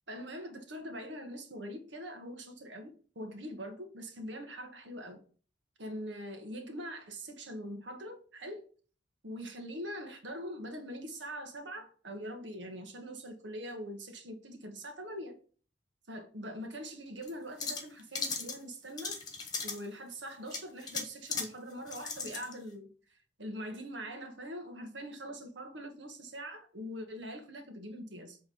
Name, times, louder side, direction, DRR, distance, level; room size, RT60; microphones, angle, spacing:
voice 1, 0.1-5.2 5.8-8.6 9.2-15.3 16.1-19.2 19.6-28.4, equal, 75° right, 1.6 m, -43 dB
sound 1, 17.2-17.3 17.6-18.6 19.0-19.9 20.5-21.5 21.9-22.5, left 4 dB, 20° left, 1.5 m, -37 dB
8.1 x 3.7 x 5.0 m
head